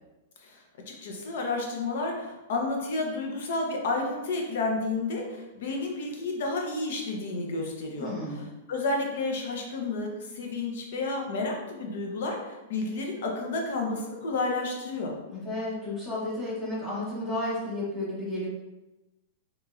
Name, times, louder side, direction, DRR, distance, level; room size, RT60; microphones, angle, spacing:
voice 1, 0.9-15.1, left 3 dB, 60° left, 1 dB, 0.6 m, -31 dB
voice 2, 8.0-8.5 15.3-18.5, left 1 dB, 20° left, -10 dB, 0.9 m, -32 dB
2.9 x 2.7 x 2.4 m, 1.0 s
supercardioid pair, 165°, 0 cm